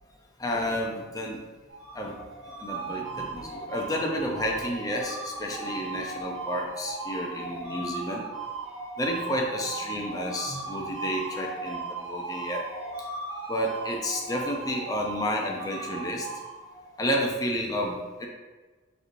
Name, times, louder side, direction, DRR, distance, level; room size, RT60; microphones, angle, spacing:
voice 1, 0.4-1.4 1.9-2.2 2.4-8.2 9.0-12.6 13.5-16.3 17.0-18.3, equal, 20° left, 0 dB, 0.5 m, -31 dB
sound 1, 1.7-17.0, right 3 dB, 75° right, 0.9 m, -37 dB
5.1 x 3.1 x 2.5 m, 1.3 s
head